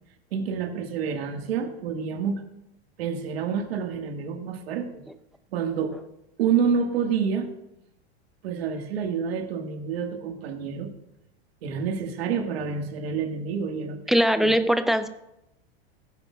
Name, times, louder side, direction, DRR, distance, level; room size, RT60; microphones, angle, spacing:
voice 1, 0.3-2.4 3.0-5.0 5.5-6.0 6.4-7.5 8.4-10.9 11.6-14.0 14.4-14.5, right 6 dB, 80° right, 4 dB, 1.7 m, -28 dB
voice 2, 14.1-15.1, equal, ahead, 9 dB, 0.5 m, -21 dB
17.5 x 10.5 x 2.4 m, 0.86 s
supercardioid pair, 120°, 30 cm